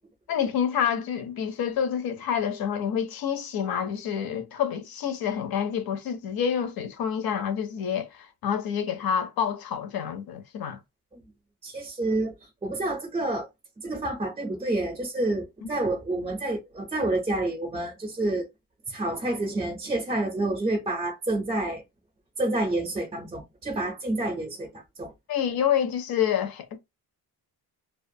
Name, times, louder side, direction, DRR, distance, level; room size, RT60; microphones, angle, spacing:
voice 1, 0.3-10.8 15.6-15.7 25.3-26.8, left 8 dB, 65° left, 0.6 m, -28 dB
voice 2, 11.6-12.3 12.6-13.5 13.8-18.5 18.9-21.8 22.4-24.7 25.0-25.1, right 2 dB, 15° right, 0.4 m, -28 dB
2.4 x 2.3 x 2.6 m
wide cardioid pair, 175°, 39 cm